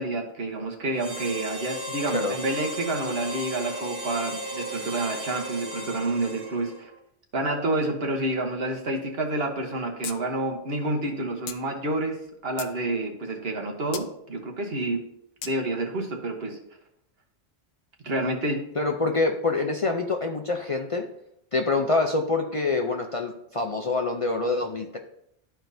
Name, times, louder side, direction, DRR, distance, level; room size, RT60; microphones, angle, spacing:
voice 1, 0.0-6.9 7.3-15.0 15.4-16.6 18.0-18.6, right 2 dB, 70° right, 2 dB, 1.4 m, -29 dB
Harmonica, 0.9-6.9, equal, 25° right, 0.8 m, -35 dB
sound 1, 10.0-10.2 10.5-10.6 11.5-11.6 12.2-12.8 13.9-14.1 15.4-15.5, left 7 dB, 75° left, 0.8 m, -36 dB
voice 2, 18.8-21.0 21.5-25.0, left 3 dB, 40° left, 3 dB, 0.5 m, -26 dB
12.5 x 4.4 x 2.7 m, 0.75 s
omnidirectional pair, 1.1 m